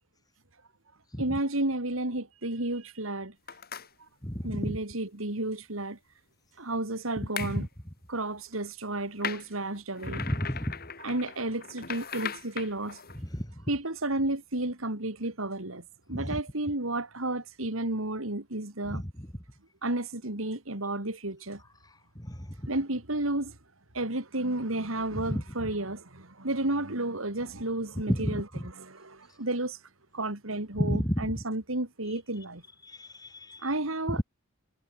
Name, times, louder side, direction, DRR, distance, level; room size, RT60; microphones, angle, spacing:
voice 1, 1.2-3.3 4.4-6.0 6.6-7.7 8.1-10.2 11.0-13.0 13.7-15.8 16.1-19.0 19.8-21.6 22.7-23.5 23.9-29.8 30.1-32.6 33.6-34.2, right 2 dB, 85° right, 3.6 m, -32 dB
sound 1, 3.5-3.9 7.4-7.6 9.2-13.2, left 7 dB, 50° left, 5.0 m, -38 dB
voice 2, 4.2-4.8 7.4-7.7 10.0-10.8 13.2-13.5 16.1-16.4 18.9-19.3 22.1-22.5 25.1-25.4 28.1-28.4 30.8-31.3 33.0-33.7, equal, 20° left, 4.9 m, -31 dB
head